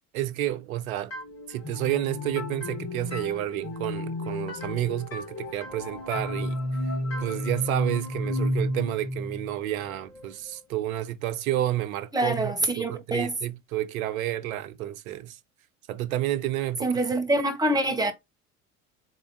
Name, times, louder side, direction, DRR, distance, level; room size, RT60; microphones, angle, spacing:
voice 1, 0.1-1.1 1.5-6.6 7.2-15.4 15.9-16.9, right 13 dB, 75° right, 0.7 m, -30 dB
sound 1, 1.1-10.6, left 1 dB, 35° left, 2.4 m, -32 dB
voice 2, 12.1-13.4 16.8-18.1, right 1 dB, 10° right, 1.2 m, -25 dB
4.1 x 3.4 x 2.2 m
hypercardioid pair, 70°, 43 cm